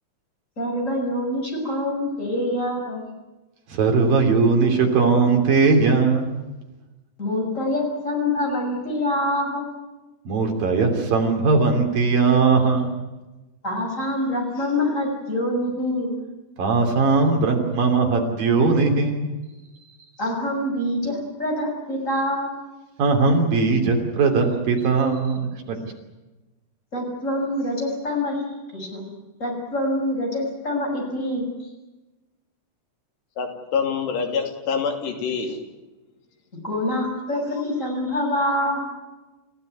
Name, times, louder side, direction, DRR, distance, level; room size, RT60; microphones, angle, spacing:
voice 1, 0.6-3.0 7.2-9.7 13.6-16.1 20.2-22.5 26.9-28.4 28.7-29.1 29.4-31.5 36.6-38.8, left 1 dB, 15° left, 1 dB, 7.1 m, -25 dB
voice 2, 3.7-6.4 10.3-13.0 16.6-19.4 23.0-25.8, right 4 dB, 60° right, 3 dB, 4.7 m, -19 dB
voice 3, 33.4-35.6, left 5 dB, 85° left, 4 dB, 5.0 m, -26 dB
29.5 x 16.0 x 9.5 m, 1.1 s
omnidirectional pair, 4.7 m